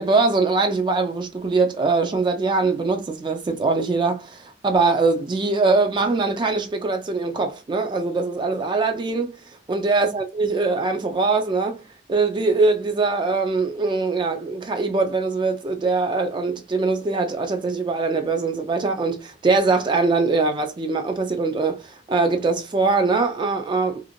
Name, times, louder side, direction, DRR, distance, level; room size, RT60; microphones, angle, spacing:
voice 1, 0.0-9.3 9.7-11.8 12.1-24.1, right 3 dB, 25° right, 0.3 m, -22 dB
2.5 x 2.5 x 2.9 m
head